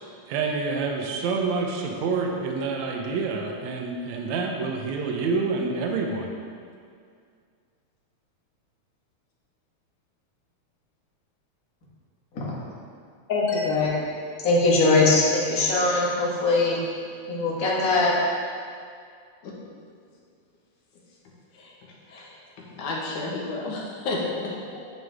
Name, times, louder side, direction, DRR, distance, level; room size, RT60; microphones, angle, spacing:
voice 1, 0.3-6.3, right 4 dB, 75° right, 1 dB, 2.2 m, -27 dB
voice 2, 13.3-13.9 14.4-16.8 17.3-18.1, left 3 dB, 35° left, -5 dB, 1.8 m, -21 dB
voice 3, 22.1-24.8, left 2 dB, 90° left, -3 dB, 3.0 m, -32 dB
9.4 x 9.0 x 3.6 m, 2.2 s
omnidirectional pair, 3.3 m